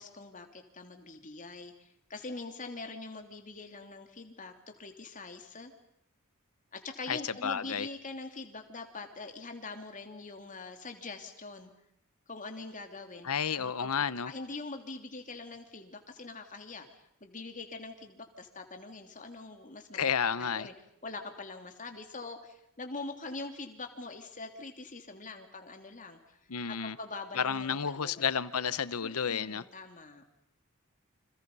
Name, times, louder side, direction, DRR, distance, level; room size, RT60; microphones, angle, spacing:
voice 1, 0.0-5.7 6.7-11.7 12.3-13.9 14.2-20.0 20.4-20.7 21.0-26.4 26.7-28.4 29.0-30.2, left 3 dB, 35° left, 5 dB, 3.1 m, -44 dB
voice 2, 7.1-7.9 13.2-14.3 19.9-20.7 26.5-27.0 27.3-29.6, left 7 dB, 80° left, 16 dB, 0.9 m, -31 dB
30.0 x 27.0 x 5.6 m, 0.75 s
head